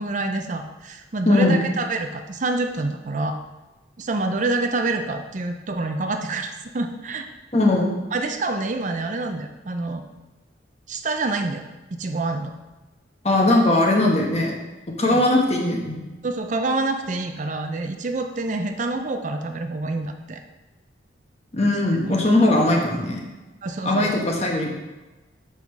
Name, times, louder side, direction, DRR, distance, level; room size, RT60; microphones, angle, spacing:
voice 1, 0.0-3.4 4.0-7.3 8.1-10.0 10.9-11.6 12.0-12.5 15.1-15.2 16.2-20.4 23.6-24.2, right 2 dB, 40° right, 6 dB, 0.5 m, -27 dB
voice 2, 1.2-1.6 7.5-7.9 13.2-14.5 14.9-16.1 21.5-23.2 23.8-24.7, left 2 dB, 35° left, 0 dB, 1.2 m, -19 dB
7.2 x 5.7 x 4.6 m, 1.1 s
head